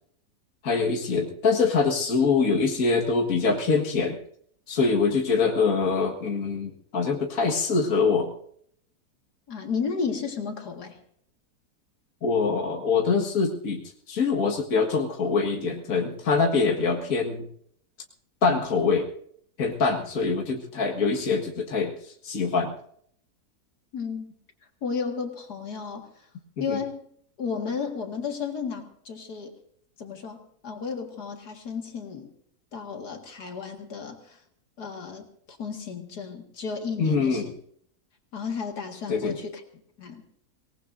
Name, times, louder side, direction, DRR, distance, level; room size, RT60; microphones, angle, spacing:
voice 1, 0.6-4.2 4.7-8.3 12.2-17.5 18.4-19.1 19.6-22.7 26.6-26.8 37.0-37.5 39.1-39.4, left 4 dB, 60° left, 0 dB, 2.1 m, -24 dB
voice 2, 9.5-11.0 23.9-24.3 24.8-26.1 26.6-27.1 27.4-29.5 30.0-32.3 32.7-34.4 34.8-37.5 38.3-39.6 40.0-40.2, left 5 dB, 75° left, 3 dB, 2.4 m, -33 dB
25.0 x 19.0 x 2.6 m, 0.65 s
omnidirectional pair, 1.7 m